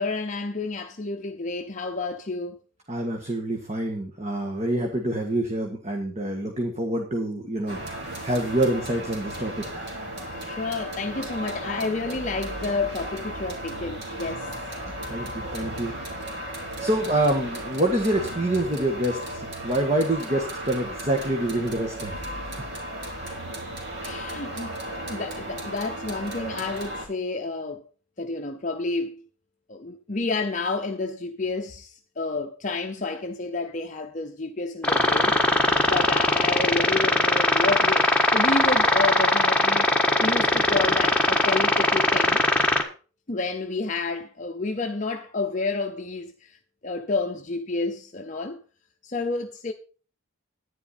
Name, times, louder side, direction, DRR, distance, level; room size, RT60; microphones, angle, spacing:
voice 1, 0.0-2.6 10.3-14.5 24.0-27.8 28.2-29.2 29.7-35.3 35.6-39.9 40.2-42.4 43.3-46.6 46.8-48.6 49.0-49.7, left 3 dB, 35° left, 0.7 m, -30 dB
voice 2, 2.9-9.9 14.9-16.0 16.4-16.5 16.8-22.2, right 1 dB, 30° right, 1.7 m, -27 dB
sound 1, 7.7-27.1, right 1 dB, 50° right, 3.4 m, -35 dB
sound 2, 34.8-42.8, left 2 dB, 5° left, 1.5 m, -21 dB
11.0 x 10.0 x 4.3 m
head